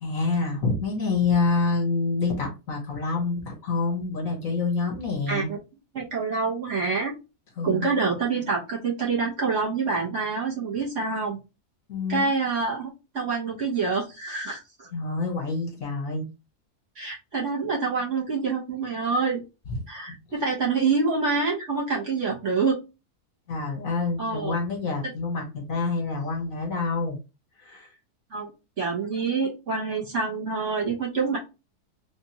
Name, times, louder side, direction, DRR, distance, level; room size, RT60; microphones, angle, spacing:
voice 1, 0.0-5.5 7.6-7.9 11.9-12.3 14.9-16.2 19.7-19.8 23.5-27.2 27.6-27.9, left 3 dB, 60° left, 1 dB, 1.5 m, -27 dB
voice 2, 5.3-5.6 5.9-7.1 7.6-11.4 12.1-14.9 16.9-19.4 19.9-22.8 24.2-24.5 28.3-28.5 28.8-31.4, right 4 dB, 50° right, -3 dB, 1.4 m, -26 dB
3.7 x 2.6 x 2.9 m, 0.28 s
omnidirectional pair, 1.7 m